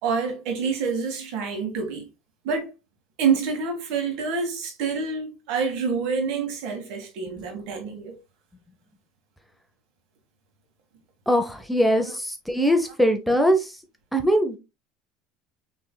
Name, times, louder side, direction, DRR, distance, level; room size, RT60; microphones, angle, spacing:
voice 1, 0.0-2.0 2.4-2.7 3.2-8.1, right 5 dB, 65° right, 1.8 m, -27 dB
voice 2, 11.3-13.8 14.1-14.6, equal, ahead, 0.6 m, -21 dB
5.9 x 3.3 x 2.2 m
cardioid pair, 145°, 0 cm